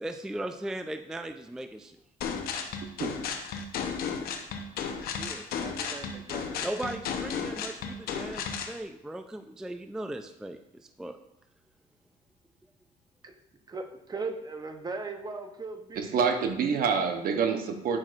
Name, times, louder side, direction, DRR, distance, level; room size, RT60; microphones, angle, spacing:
voice 1, 0.0-2.0 5.2-5.5 6.6-11.2, right 1 dB, 5° right, 8 dB, 0.3 m, -38 dB
sound 1, 2.2-8.8, left 6 dB, 70° left, 0.8 m, -34 dB
voice 2, 5.6-7.1 13.2-13.3 13.7-16.4, right 3 dB, 25° right, 6 dB, 0.8 m, -39 dB
voice 3, 16.0-18.0, right 6 dB, 60° right, 6 dB, 0.9 m, -27 dB
8.8 x 6.0 x 2.5 m, 0.86 s
cardioid pair, 85°, 16 cm